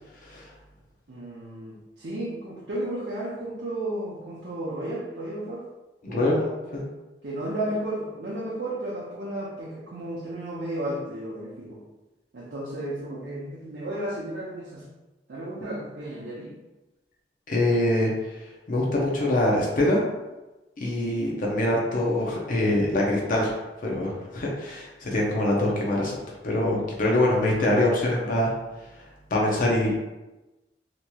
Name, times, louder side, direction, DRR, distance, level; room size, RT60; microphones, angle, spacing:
voice 1, 1.1-5.6 6.1-6.6 7.2-11.8 12.3-14.9 15.3-16.5 27.5-28.4, right 1 dB, 70° right, -6 dB, 0.6 m, -33 dB
voice 2, 6.0-6.4 6.7-6.8 17.5-18.4 18.7-20.0 20.8-23.5 23.8-26.2 26.4-28.5 29.0-30.0, left 1 dB, 50° left, -2 dB, 0.5 m, -24 dB
2.9 x 2.9 x 2.2 m, 1.1 s
head